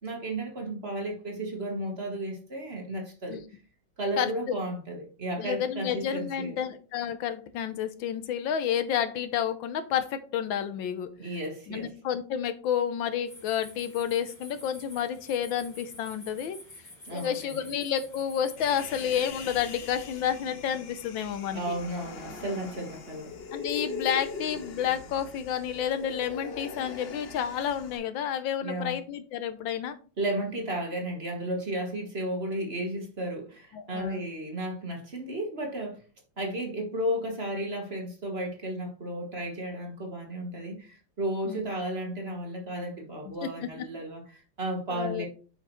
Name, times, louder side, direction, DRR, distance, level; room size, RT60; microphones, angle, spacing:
voice 1, 0.0-3.4 4.0-6.5 11.2-11.9 17.0-17.7 21.5-23.3 28.6-29.0 30.2-36.0 36.4-45.3, right 1 dB, 35° right, 2 dB, 1.5 m, -33 dB
voice 2, 4.2-4.5 5.4-11.1 11.7-16.6 17.1-21.7 23.5-30.0 33.7-34.2 41.5-41.6 43.4-43.5 44.9-45.3, left 9 dB, 80° left, 10 dB, 1.5 m, -30 dB
sound 1, 13.2-19.3, left 1 dB, 20° left, 2.9 m, -49 dB
Human voice, 18.6-28.0, left 5 dB, 50° left, 0.7 m, -41 dB
8.1 x 5.6 x 3.1 m, 0.37 s
omnidirectional pair, 2.1 m